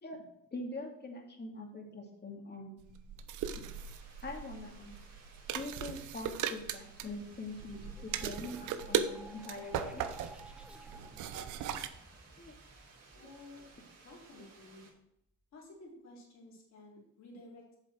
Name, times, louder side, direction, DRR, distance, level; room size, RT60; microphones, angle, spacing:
voice 1, 0.5-2.7 3.5-3.6 4.2-5.0 5.5-10.0 12.4-12.5 13.1-13.3, left 2 dB, 35° left, 1 dB, 2.4 m, -44 dB
sound 1, 2.8-11.9, right 9 dB, 90° right, 0.7 m, -38 dB
sound 2, 3.6-14.9, right 4 dB, 55° right, 3.2 m, -59 dB
sound 3, 6.9-14.5, right 1 dB, 5° right, 1.0 m, -56 dB
voice 2, 13.1-13.6 14.0-14.9 15.5-17.8, left 2 dB, 60° left, -4 dB, 3.9 m, -53 dB
7.9 x 7.2 x 4.6 m, 0.78 s
cardioid pair, 90°, 30 cm